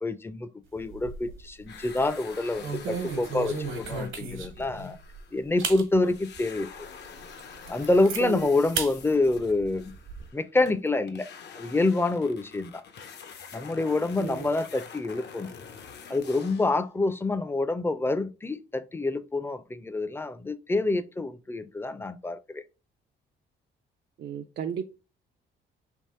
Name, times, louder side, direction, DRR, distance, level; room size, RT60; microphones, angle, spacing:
voice 1, 0.0-5.0 5.3-6.9 7.7-9.9 10.3-11.3 11.6-12.8 13.5-15.5 16.1-22.6, left 2 dB, 10° left, 0.5 m, -27 dB
sound 1, 0.8-1.5 1.8-2.1 2.6-4.7 5.1-5.2 5.6-5.8 6.4-6.5 7.0-7.1 7.4-8.2 8.7-8.9 9.3-10.2, right 5 dB, 75° right, 1.2 m, -34 dB
sound 2, 1.7-5.8 6.0-16.8, left 6 dB, 60° left, 0.7 m, -46 dB
voice 2, 14.2-14.5 24.2-24.9, right 8 dB, 55° right, 0.4 m, -33 dB
3.5 x 3.0 x 4.2 m
cardioid pair, 90°, 20 cm